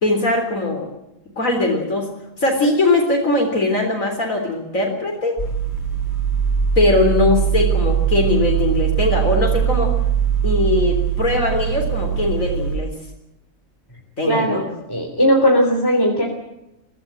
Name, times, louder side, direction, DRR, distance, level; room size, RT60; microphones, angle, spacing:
voice 1, 0.0-0.9 1.4-2.1 2.4-5.4 6.8-9.9 10.4-12.9 14.2-14.6, left 2 dB, 65° left, 1 dB, 4.2 m, -20 dB
sound 1, 5.4-12.8, right 8 dB, 45° left, 5.1 m, -21 dB
voice 2, 14.3-16.2, equal, 15° left, 0 dB, 3.7 m, -18 dB
23.5 x 17.0 x 9.0 m, 0.88 s
omnidirectional pair, 1.5 m